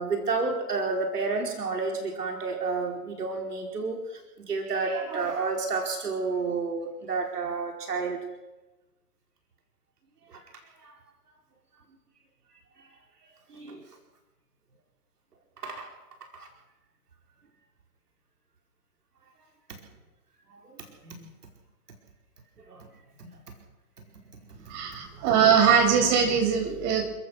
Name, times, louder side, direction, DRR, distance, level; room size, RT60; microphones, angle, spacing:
voice 1, 0.0-4.2 4.5-8.2 10.3-10.4 10.8-10.9 13.5-13.9 15.6-15.9 16.2-16.5 20.5-21.3 22.7-22.9 23.2-23.4, right 4 dB, 80° right, 2 dB, 4.9 m, -31 dB
voice 2, 24.7-27.0, right 7 dB, 35° right, 3 dB, 6.9 m, -21 dB
29.5 x 14.5 x 6.4 m, 1.1 s
hypercardioid pair, 130°, 46 cm